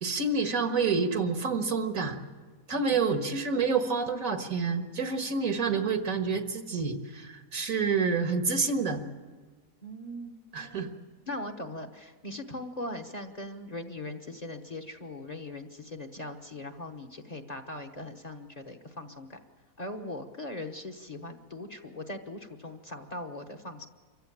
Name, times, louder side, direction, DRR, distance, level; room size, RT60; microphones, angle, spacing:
voice 1, 0.0-2.2 2.7-9.0 10.5-10.9, right 4 dB, 75° right, 6 dB, 1.9 m, -28 dB
voice 2, 2.7-3.1 9.8-10.4 11.3-19.4 19.8-23.9, left 1 dB, 30° left, 4 dB, 1.2 m, -40 dB
25.0 x 15.5 x 8.8 m, 1.4 s
omnidirectional pair, 1.5 m